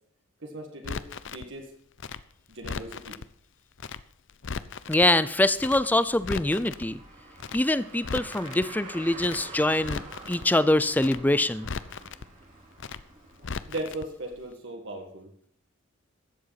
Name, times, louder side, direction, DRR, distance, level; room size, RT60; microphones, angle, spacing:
voice 1, 0.4-1.7 2.5-3.2 13.7-15.3, right 2 dB, 60° right, 2 dB, 1.8 m, -38 dB
Crackle, 0.8-1.5 2.0-3.3 3.8-4.0 4.3-5.1 5.6-5.8 6.1-6.9 7.4-7.6 7.9-8.7 9.2-9.4 9.7-10.5 11.0-11.2 11.5-12.3 12.8-13.0 13.3-14.1 14.3-14.4, left 5 dB, 60° left, 0.6 m, -37 dB
voice 2, 4.9-7.0 7.5-10.0 10.3-11.7, left 1 dB, 10° left, 15 dB, 0.4 m, -24 dB
Car, 5.3-13.9, right 3 dB, 35° right, 2.7 m, -47 dB
15.0 x 7.8 x 5.8 m, 0.64 s
head